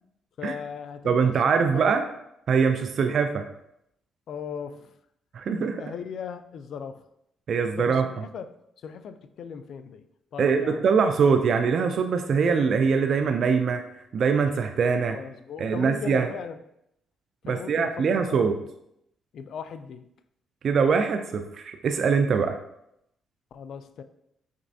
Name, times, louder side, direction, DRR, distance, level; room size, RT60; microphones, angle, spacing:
voice 1, 0.4-1.8 4.3-4.9 5.6-7.0 7.8-8.5 8.8-10.0 10.3-10.8 15.0-16.6 17.5-18.5 19.3-20.0 23.5-24.0, left 7 dB, 65° left, 10 dB, 0.3 m, -38 dB
voice 2, 1.0-2.0 2.5-3.5 5.3-5.8 7.5-8.2 10.4-15.2 15.6-16.3 17.4-18.6 20.6-22.6, right 5 dB, 55° right, 7 dB, 0.3 m, -23 dB
5.1 x 3.4 x 2.7 m, 0.78 s
cardioid pair, 90°, 0 cm